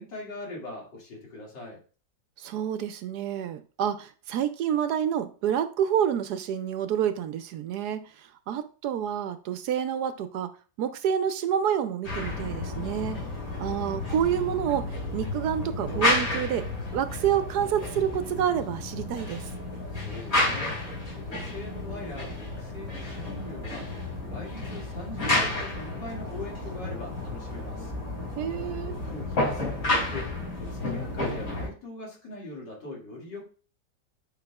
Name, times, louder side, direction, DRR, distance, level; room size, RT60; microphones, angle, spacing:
voice 1, 0.0-1.8 19.9-20.8 21.1-23.9 24.3-27.9 28.9-30.3 30.6-33.5, left 2 dB, 80° left, -2 dB, 2.8 m, -41 dB
voice 2, 2.4-13.2 13.6-19.5 28.4-28.9, right 9 dB, 75° right, 11 dB, 1.0 m, -28 dB
sound 1, 12.0-31.7, left 2 dB, 65° left, 3.9 m, -31 dB
9.1 x 5.4 x 2.3 m, 0.38 s
omnidirectional pair, 1.9 m